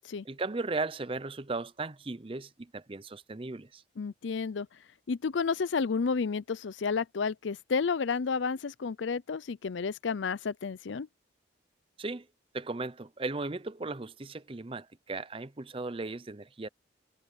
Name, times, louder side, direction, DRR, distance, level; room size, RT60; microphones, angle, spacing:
voice 1, 0.2-3.8 12.0-12.3 12.5-16.7, right 3 dB, 30° right, 0.6 m, -36 dB
voice 2, 4.0-4.7 5.1-11.1, left 5 dB, 80° left, 0.5 m, -31 dB
head